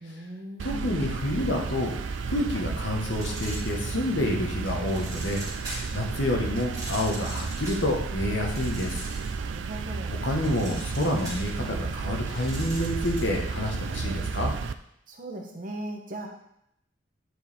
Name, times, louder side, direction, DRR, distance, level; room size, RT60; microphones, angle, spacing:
voice 1, 0.0-1.0 9.4-10.2 15.1-16.3, right 1 dB, 45° right, 2 dB, 1.1 m, -38 dB
voice 2, 0.6-1.9 2.3-5.4 5.9-9.0 10.2-14.5, left 1 dB, 70° left, 0 dB, 1.3 m, -28 dB
sound 1, 0.6-14.7, right 4 dB, 80° right, 0.4 m, -32 dB
sound 2, 3.1-4.1 4.7-6.0 6.5-9.5 9.8-13.4, right 2 dB, 20° right, 2.1 m, -41 dB
9.2 x 4.7 x 3.6 m, 0.76 s
head